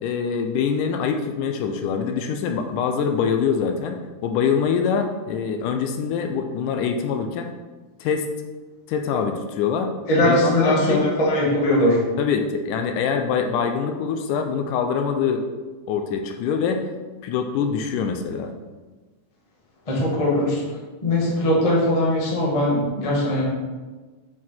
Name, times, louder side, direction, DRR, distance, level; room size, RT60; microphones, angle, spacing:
voice 1, 0.0-7.5 8.0-8.3 8.9-9.9 10.2-11.1 12.2-15.5 15.9-16.9 17.2-18.5, left 6 dB, 80° left, 6 dB, 2.0 m, -24 dB
voice 2, 10.1-12.0 19.9-20.6 21.0-23.4, left 1 dB, 60° left, -5 dB, 0.3 m, -20 dB
8.3 x 4.6 x 4.3 m, 1.3 s
omnidirectional pair, 4.0 m